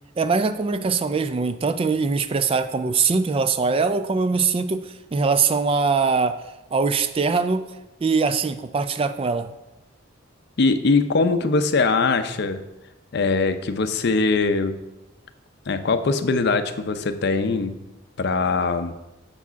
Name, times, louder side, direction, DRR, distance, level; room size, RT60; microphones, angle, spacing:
voice 1, 0.2-7.7 8.0-9.5, right 4 dB, 30° right, 0.3 m, -22 dB
voice 2, 10.6-12.6 13.1-14.8 15.7-17.8 18.2-18.9, left 3 dB, 55° left, 0.5 m, -21 dB
7.1 x 4.8 x 5.7 m
head